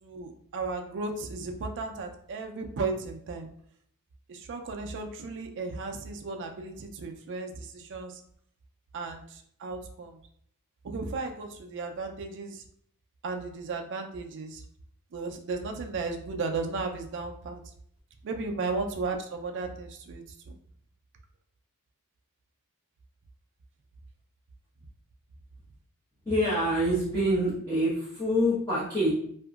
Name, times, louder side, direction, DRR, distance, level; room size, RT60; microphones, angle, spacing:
voice 1, 0.0-3.5 4.3-8.2 8.9-10.2 10.8-12.6 13.2-14.6 15.1-17.6 18.2-20.6, right 3 dB, 55° right, 3 dB, 0.4 m, -35 dB
voice 2, 26.2-29.1, equal, 10° left, -13 dB, 1.0 m, -26 dB
2.8 x 2.5 x 2.3 m, 0.64 s
head